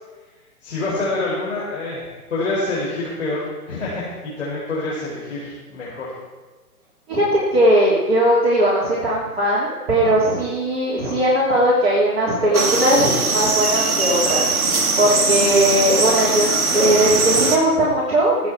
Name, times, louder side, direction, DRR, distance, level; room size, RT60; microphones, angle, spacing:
voice 1, 0.6-6.1, left 2 dB, 55° left, -7 dB, 4.5 m, -26 dB
voice 2, 7.1-18.5, right 1 dB, 40° right, -6 dB, 3.1 m, -19 dB
sound 1, 12.5-17.6, right 3 dB, 65° right, 2.2 m, -20 dB
20.5 x 8.3 x 4.6 m, 1.2 s
figure-of-eight pair, 130°, 46 cm